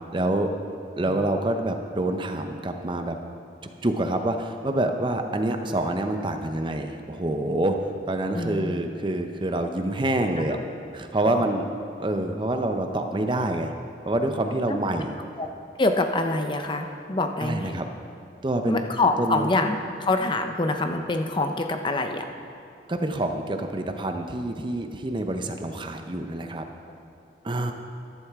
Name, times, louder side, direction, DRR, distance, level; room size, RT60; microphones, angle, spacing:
voice 1, 0.1-0.5 1.0-3.2 3.8-7.8 8.1-10.6 10.9-11.7 12.0-13.7 14.1-15.1 17.4-17.9 18.4-18.8 19.2-19.4 22.9-26.7 27.4-27.7, right 1 dB, 25° right, 5 dB, 0.6 m, -26 dB
voice 2, 8.3-8.8 10.5-10.6 11.2-11.4 14.7-14.8 15.4-15.5 15.8-17.8 18.7-22.3, left 2 dB, 25° left, 5 dB, 0.6 m, -25 dB
13.5 x 11.5 x 3.6 m, 2.5 s
head